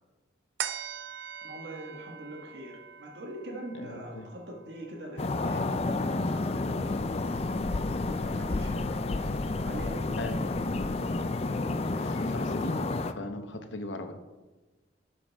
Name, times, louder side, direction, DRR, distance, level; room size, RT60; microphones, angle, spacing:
sound 1, 0.6-7.3 7.8-7.9, right 9 dB, 75° right, 0.5 m, -43 dB
voice 1, 1.4-5.7 6.3-7.0 7.3-7.6 8.1-9.0 9.6-10.6, right 1 dB, 60° right, 0 dB, 1.5 m, -43 dB
voice 2, 3.7-4.3 10.2-10.4 11.9-12.8 13.1-14.1, left 2 dB, 75° left, 6 dB, 1.0 m, -38 dB
sound 2, 5.2-13.1, left 2 dB, 30° left, 0.4 m, -30 dB
12.0 x 7.5 x 3.5 m, 1.2 s
head